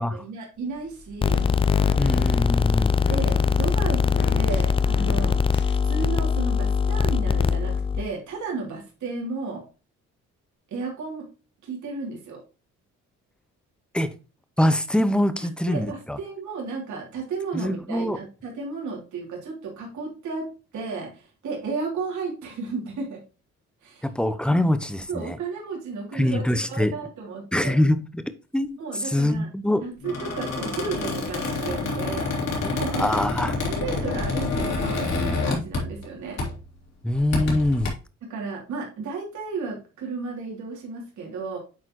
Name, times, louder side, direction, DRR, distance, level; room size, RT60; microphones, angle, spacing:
voice 1, 0.1-1.4 3.1-4.0 4.3-5.4 5.8-9.6 10.7-11.3 11.6-12.4 15.4-23.2 23.8-24.1 24.5-24.7 25.1-27.8 28.8-29.5 29.8-32.3 32.7-33.2 33.7-36.4 38.3-41.6, right 4 dB, 70° right, 3.1 m, -33 dB
sound 1, 0.7-6.4, left 4 dB, 40° left, 1.0 m, -36 dB
sound 2, 1.2-8.0, left 6 dB, 20° left, 0.3 m, -22 dB
voice 2, 2.0-3.0 13.9-14.1 14.6-16.2 17.5-18.2 24.0-25.4 26.1-26.9 27.5-28.2 28.5-29.8 32.9-33.6 37.0-37.9, left 1 dB, 5° left, 0.7 m, -24 dB
Squeak, 30.0-36.1 36.4-36.6 37.1-37.9, left 3 dB, 60° left, 3.1 m, -28 dB
9.2 x 4.0 x 3.1 m
cardioid pair, 90°, 30 cm